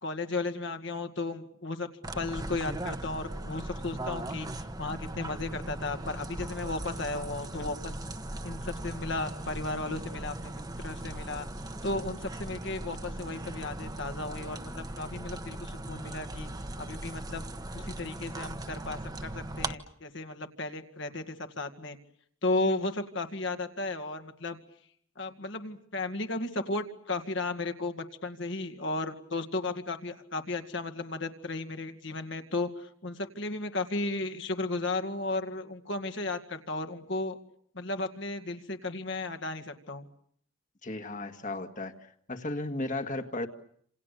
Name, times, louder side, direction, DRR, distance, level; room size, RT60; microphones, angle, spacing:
voice 1, 0.0-1.9 2.1-4.5 4.8-7.9 8.4-11.5 11.8-16.5 16.8-17.5 17.7-22.0 22.4-24.6 25.2-37.4 37.7-40.1, left 2 dB, 60° left, 7 dB, 2.2 m, -34 dB
sound 1, 2.0-19.7, right 1 dB, 20° right, 1.2 m, -39 dB
voice 2, 40.8-41.9 42.3-43.5, left 2 dB, 40° left, 7 dB, 1.9 m, -34 dB
28.5 x 27.5 x 6.8 m, 0.66 s
head